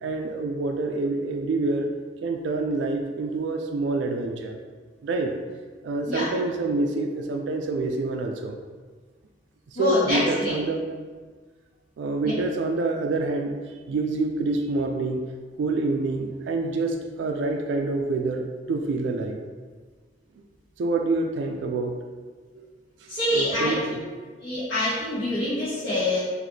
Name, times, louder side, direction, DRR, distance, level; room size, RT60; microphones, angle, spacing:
voice 1, 0.0-1.9 2.2-4.6 5.0-5.4 5.8-8.6 9.7-10.9 12.0-13.6 13.9-15.3 15.6-19.4 20.8-22.0 22.6-22.7 23.0-24.0, right 3 dB, 75° right, 3 dB, 0.3 m, -27 dB
voice 2, 9.7-10.5 23.1-23.7 24.4-26.2, left 1 dB, 70° left, -15 dB, 1.5 m, -25 dB
4.0 x 3.0 x 3.1 m, 1.5 s
head